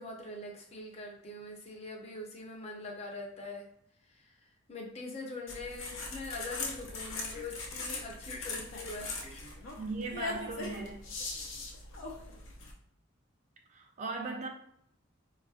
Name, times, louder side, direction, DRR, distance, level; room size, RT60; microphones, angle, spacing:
voice 1, 0.0-3.7 4.1-9.8, left 2 dB, 35° left, 0.6 m, -43 dB
sound 1, 5.5-12.7, left 3 dB, 80° left, 0.7 m, -40 dB
voice 2, 9.8-11.1 13.7-14.5, right 3 dB, 35° right, 0.4 m, -38 dB
4.3 x 2.4 x 2.4 m
head